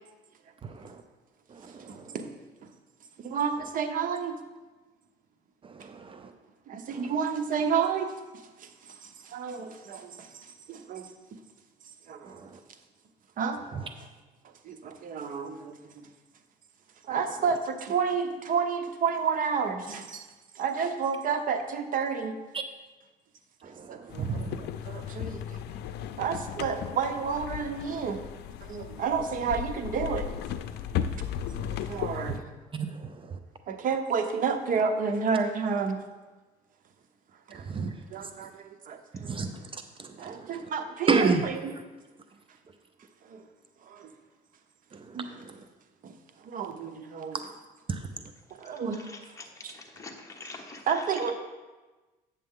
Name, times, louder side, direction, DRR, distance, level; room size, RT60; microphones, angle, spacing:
voice 1, 0.6-1.0 1.5-2.2 5.6-6.3 6.9-7.1 12.2-12.6 13.7-13.8 22.5-22.6 23.6-24.7 32.3-32.4 32.9-33.4 37.7-37.9 39.2-40.6 41.1-41.5 44.9-45.6 47.3-47.4 47.9-48.1, right 4 dB, 30° right, 8 dB, 0.5 m, -32 dB
voice 2, 1.9-2.3 2.6-2.7 3.2-4.4 6.7-8.1 8.6-8.7 9.0-11.1 12.1-12.4 13.4-13.6 14.6-16.1 17.0-20.3 20.5-22.4 23.6-24.4 24.8-25.6 26.2-28.2 28.6-30.2 31.7-32.5 33.7-36.0 37.5-39.4 40.2-41.7 43.3-43.4 43.9-44.1 45.1-45.3 46.0-46.1 46.4-47.4 48.6-49.1 49.6-49.7 50.9-51.3, right 6 dB, 55° right, 7 dB, 0.9 m, -30 dB
sound 1, 24.1-32.4, left 9 dB, 75° left, 0.5 m, -36 dB
voice 3, 48.9-51.2, left 3 dB, 20° left, 1 dB, 1.1 m, -45 dB
8.7 x 6.8 x 3.7 m, 1.2 s
cardioid pair, 110°, 17 cm